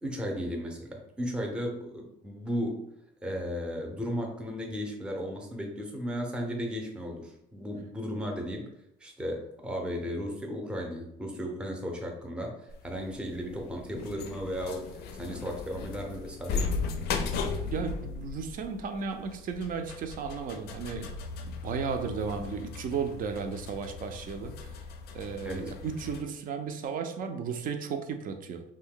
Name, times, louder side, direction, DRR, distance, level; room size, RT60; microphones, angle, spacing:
voice 1, 0.0-2.9 3.2-8.7 9.0-16.7 25.4-25.8, equal, 5° right, 1 dB, 0.5 m, -35 dB
sound 1, 12.7-26.2, left 4 dB, 70° left, 0.4 m, -37 dB
voice 2, 17.7-21.1 21.4-24.7 25.1-28.6, right 5 dB, 55° right, 7 dB, 0.4 m, -34 dB
2.6 x 2.2 x 3.6 m, 0.79 s
cardioid pair, 110°, 17 cm